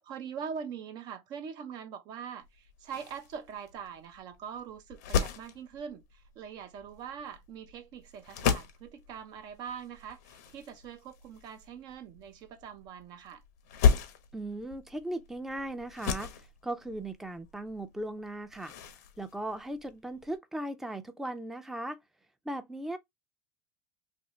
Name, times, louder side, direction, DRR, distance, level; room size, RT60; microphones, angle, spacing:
voice 1, 0.0-13.4, right 7 dB, 55° right, 0.5 m, -43 dB
sound 1, 2.4-20.4, left 7 dB, 75° left, 0.6 m, -35 dB
voice 2, 14.3-18.8 19.2-22.0 22.4-23.0, right 1 dB, 5° right, 0.4 m, -38 dB
2.6 x 2.6 x 3.1 m
hypercardioid pair, 90°, 9 cm